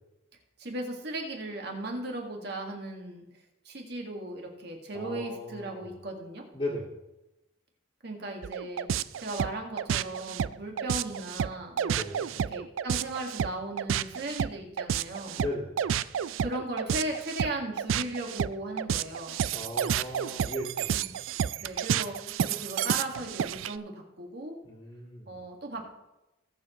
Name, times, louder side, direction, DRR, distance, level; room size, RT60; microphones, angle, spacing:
voice 1, 0.6-3.3 3.7-6.4 8.0-8.9 9.2-12.1 12.5-15.4 16.4-19.4 20.9-21.1 21.6-24.6 25.3-25.9, right 1 dB, 55° right, 2 dB, 1.9 m, -37 dB
voice 2, 4.9-5.9 6.5-6.9 11.9-12.3 15.4-15.8 19.5-21.0 24.6-25.4, left 1 dB, 25° left, -7 dB, 1.8 m, -37 dB
sound 1, 8.4-23.7, right 8 dB, 85° right, 0.3 m, -30 dB
19.0 x 7.0 x 3.1 m, 0.97 s
head